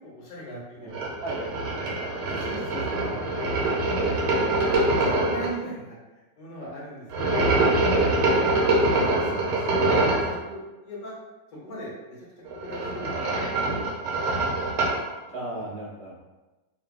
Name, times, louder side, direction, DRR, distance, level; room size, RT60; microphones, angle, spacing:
voice 1, 0.0-1.1 2.4-3.2 3.9-6.0 6.4-7.7 8.0-10.1 10.4-11.1 11.6-11.9 12.6-13.9 15.5-15.7, equal, 40° left, -6 dB, 0.6 m, -39 dB
voice 2, 0.8-2.5 15.3-16.2, right 2 dB, 60° right, -9 dB, 0.6 m, -37 dB
sound 1, 0.9-5.5 7.1-10.3 12.4-15.0, right 2 dB, 80° right, 1.3 m, -24 dB
2.7 x 2.5 x 2.3 m, 1.1 s
omnidirectional pair, 1.9 m